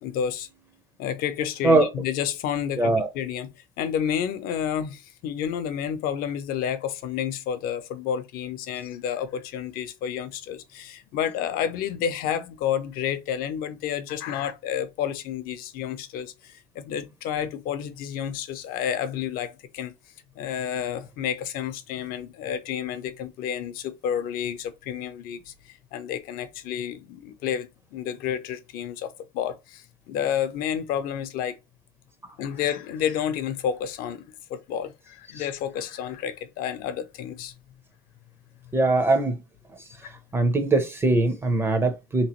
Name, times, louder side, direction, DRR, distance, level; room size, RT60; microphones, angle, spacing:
voice 1, 0.0-0.5 1.0-19.9 20.4-31.6 32.4-34.2 34.5-37.5 40.0-40.1, left 9 dB, 55° left, 0.5 m, -30 dB
voice 2, 2.8-3.1 38.7-39.4 40.0-42.3, right 2 dB, 15° right, 0.5 m, -22 dB
3.4 x 3.0 x 2.9 m
cardioid pair, 150°, 18 cm